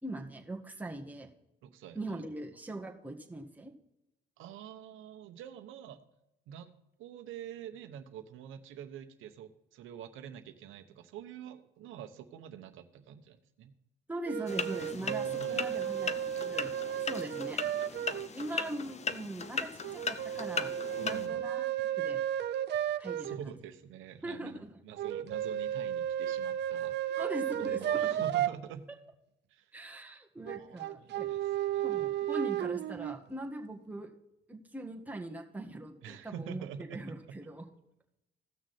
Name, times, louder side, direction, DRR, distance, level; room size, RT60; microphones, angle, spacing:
voice 1, 0.0-1.3 1.9-3.7 14.1-16.1 16.3-16.7 17.0-17.6 17.9-20.7 21.0-22.2 23.0-23.5 24.2-24.7 27.2-28.1 29.7-31.3 31.8-34.1 34.5-37.7, right 1 dB, 10° right, 0 dB, 1.7 m, -41 dB
voice 2, 1.6-2.2 4.4-6.0 6.5-6.7 7.0-13.7 14.9-15.9 21.0-21.4 23.2-27.2 27.5-28.9 29.5-29.7 30.6-32.1 36.0-37.0, right 9 dB, 90° right, 9 dB, 0.9 m, -46 dB
sound 1, 14.3-18.3 19.8-23.4 25.0-28.5 30.5-33.2, right 11 dB, 60° right, 0.5 m, -33 dB
sound 2, 14.5-21.3, left 5 dB, 35° left, 0.7 m, -38 dB
16.0 x 6.2 x 4.3 m, 0.86 s
cardioid pair, 90°, 20 cm